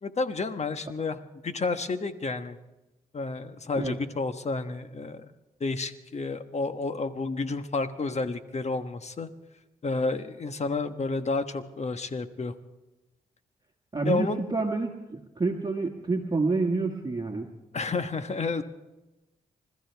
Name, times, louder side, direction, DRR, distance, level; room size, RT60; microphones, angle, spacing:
voice 1, 0.0-2.6 3.1-5.2 5.6-9.3 9.8-12.5 14.0-14.4 17.7-18.6, left 3 dB, 45° left, 9 dB, 1.3 m, -30 dB
voice 2, 13.9-17.5, right 3 dB, 30° right, 1 dB, 1.9 m, -28 dB
28.0 x 14.0 x 3.5 m, 1.0 s
supercardioid pair, 55°, 15 cm